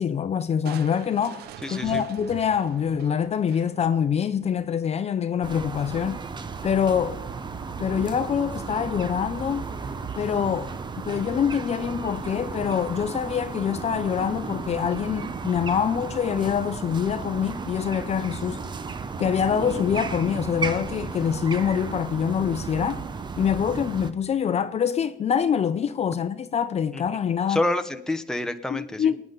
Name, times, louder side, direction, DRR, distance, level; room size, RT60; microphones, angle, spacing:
voice 1, 0.0-1.4 1.7-6.2 6.6-7.2 7.8-9.7 10.2-18.6 19.2-23.0 23.4-27.6 28.7-29.2, left 8 dB, 40° left, 0.6 m, -25 dB
Crushing, 0.6-4.0, right 11 dB, 70° right, 0.6 m, -42 dB
voice 2, 1.6-2.0 26.9-27.0 27.5-29.1, left 1 dB, 5° left, 0.8 m, -28 dB
sound 1, 5.4-24.1, right 5 dB, 25° right, 0.8 m, -34 dB
25.0 x 9.5 x 3.9 m
cardioid pair, 110°, 17 cm